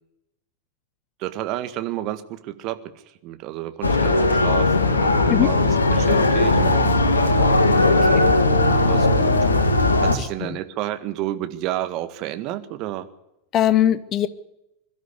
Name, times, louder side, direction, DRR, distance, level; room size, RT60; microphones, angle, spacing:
voice 1, 1.2-2.8 3.2-7.0 8.1-9.4 10.0-13.1, right 14 dB, 40° right, 11 dB, 1.7 m, -31 dB
sound 1, 3.8-10.2, left 2 dB, 75° left, 2.1 m, -18 dB
voice 2, 7.9-8.3 10.4-10.6 13.5-14.3, left 11 dB, 30° left, 15 dB, 1.2 m, -21 dB
22.5 x 12.5 x 9.8 m, 0.88 s
figure-of-eight pair, 90°, 0 cm